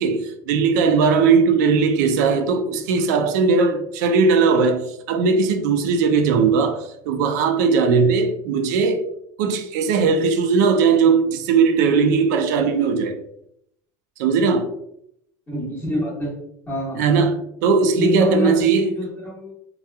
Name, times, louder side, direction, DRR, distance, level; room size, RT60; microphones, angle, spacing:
voice 1, 0.0-4.8 5.1-9.0 9.4-13.1 14.2-14.7 17.0-18.9, right 5 dB, 85° right, 0.4 m, -18 dB
voice 2, 15.5-16.4 16.7-17.0 18.0-19.5, equal, 15° left, 1.0 m, -26 dB
2.8 x 2.3 x 2.2 m
cardioid pair, 150°, 9 cm